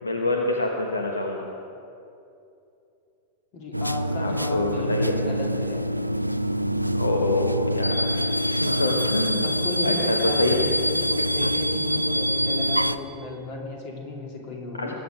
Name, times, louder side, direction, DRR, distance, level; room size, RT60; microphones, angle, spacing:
voice 1, 0.0-1.5 4.2-5.2 6.9-8.3 8.6-9.5 9.8-10.6 14.7-14.9, left 2 dB, 75° left, 2 dB, 1.0 m, -26 dB
voice 2, 3.5-5.8 9.4-14.9, left 2 dB, 45° left, 0 dB, 2.7 m, -35 dB
sound 1, 3.7-13.0, equal, 90° right, 0.4 m, -25 dB
20.5 x 8.5 x 5.0 m, 2.7 s
figure-of-eight pair, 90°, 0 cm